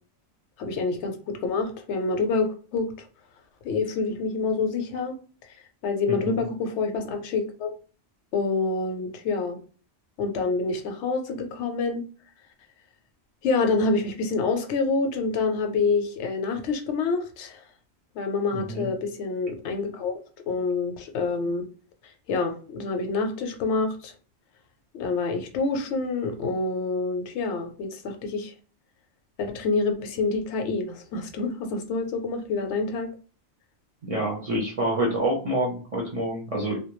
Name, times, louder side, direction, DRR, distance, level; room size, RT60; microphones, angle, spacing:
voice 1, 0.6-3.1 3.6-5.2 5.4-5.6 5.8-7.7 8.3-9.6 10.2-12.1 13.4-17.6 18.1-20.2 20.5-21.7 22.0-24.1 24.9-28.5 29.4-33.1, left 4 dB, 80° left, 0.9 m, -27 dB
voice 2, 6.1-6.4 18.5-18.9 34.0-36.8, right 1 dB, 45° right, 0.5 m, -27 dB
2.2 x 2.1 x 2.9 m
omnidirectional pair, 1.2 m